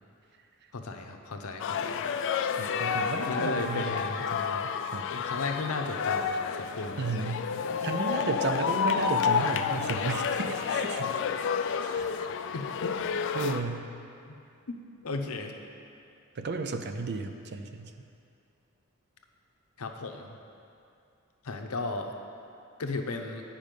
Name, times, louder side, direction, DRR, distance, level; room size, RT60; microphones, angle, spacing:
voice 1, 0.7-2.0 3.3-4.2 5.1-7.4 11.8-11.9 12.2-12.3 12.5-12.9 14.3-14.4 14.7-14.8 15.0-15.5 19.8-20.4 21.4-22.1 22.8-23.4, left 3 dB, 75° left, 4 dB, 0.7 m, -35 dB
sound 1, 1.6-13.6, left 6 dB, 60° left, 0.3 m, -30 dB
voice 2, 2.6-4.0 4.3-5.1 7.0-7.4 7.8-11.2 11.8-12.0 13.3-13.9 16.4-17.9, right 4 dB, 50° right, 7 dB, 0.5 m, -33 dB
9.2 x 5.3 x 5.1 m, 2.6 s
head